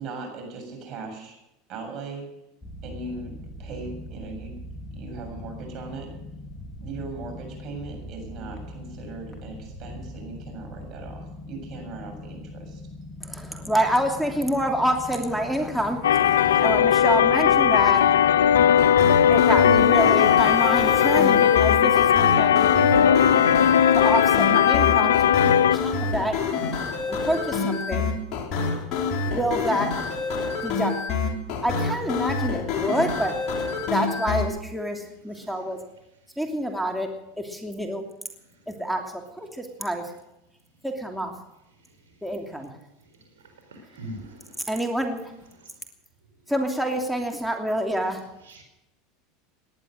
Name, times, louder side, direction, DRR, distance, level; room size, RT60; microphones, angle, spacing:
voice 1, 0.0-1.4 1.7-2.3 2.8-4.6 4.9-6.1 6.8-12.8, right 3 dB, 50° right, 5 dB, 7.4 m, -38 dB
sound 1, 2.6-19.6, left 1 dB, 15° left, 3.7 m, -41 dB
voice 2, 13.2-18.1 19.3-23.2 23.9-25.1 25.4-26.3 27.1-28.1 29.3-29.9 30.6-30.9 31.6-33.3 33.9-35.8 36.4-37.1 37.4-38.0 38.7-40.0 40.8-41.3 42.2-42.7 44.7-45.2 46.5-48.2, right 1 dB, ahead, 2 dB, 2.8 m, -27 dB
sound 2, 16.0-25.8, left 9 dB, 85° left, 0.4 m, -18 dB
sound 3, 18.5-34.5, left 4 dB, 45° left, 4.2 m, -27 dB
voice 3, 43.7-44.6 48.5-48.6, right 1 dB, 90° right, 5 dB, 4.3 m, -40 dB
18.5 x 11.0 x 6.5 m, 0.89 s
hypercardioid pair, 95°, 0 cm